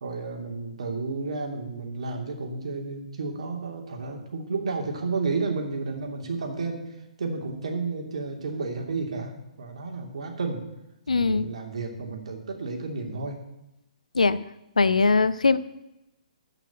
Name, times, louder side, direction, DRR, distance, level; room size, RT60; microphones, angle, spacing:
voice 1, 0.0-6.8 7.2-9.3 9.6-10.6 11.2-13.4, right 4 dB, 55° right, 2 dB, 2.9 m, -31 dB
voice 2, 11.1-11.5 14.1-14.4 14.8-15.6, left 4 dB, 75° left, 15 dB, 0.7 m, -21 dB
13.5 x 6.0 x 8.8 m, 0.92 s
figure-of-eight pair, 125°, 4 cm